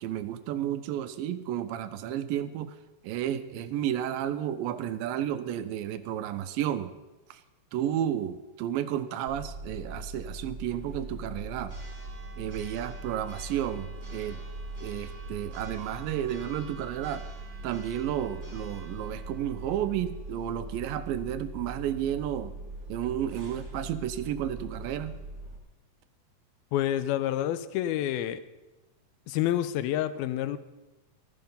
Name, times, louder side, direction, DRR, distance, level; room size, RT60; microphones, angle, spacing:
voice 1, 0.0-2.8 3.0-6.9 7.3-7.4 7.7-11.7 12.4-14.4 14.8-17.2 17.6-22.5 22.9-25.2, right 11 dB, 80° right, 12 dB, 2.2 m, -32 dB
Church bell, 9.3-25.6, right 2 dB, 20° right, 2.2 m, -41 dB
voice 2, 26.7-28.4 29.3-30.6, left 12 dB, 85° left, 13 dB, 2.5 m, -28 dB
14.5 x 13.0 x 5.5 m, 1.1 s
omnidirectional pair, 4.3 m